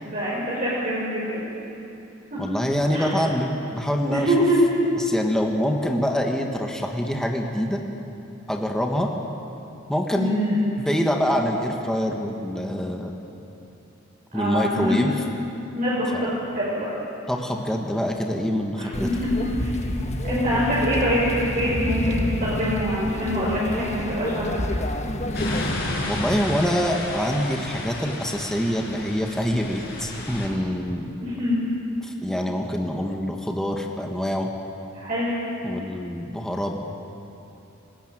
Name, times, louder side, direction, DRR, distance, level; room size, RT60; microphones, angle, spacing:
voice 1, 0.0-1.4 2.3-2.4 2.9-3.1 4.1-4.6 10.1-10.6 14.3-15.0 15.7-16.9 18.8-19.1 19.4-19.7 20.2-24.6 31.2-31.6 34.9-35.3, equal, 40° right, -8 dB, 5.7 m, -25 dB
voice 2, 2.4-4.4 5.0-7.8 8.5-9.1 9.9-13.1 14.3-15.2 16.1-16.3 17.3-19.1 26.0-31.1 32.0-34.5 35.6-36.8, equal, 5° left, 1 dB, 1.4 m, -25 dB
sound 1, 18.9-25.7, left 1 dB, 35° left, 1.4 m, -28 dB
sound 2, 25.3-30.5, left 1 dB, 55° left, 5.8 m, -31 dB
20.0 x 19.5 x 9.1 m, 2.9 s
head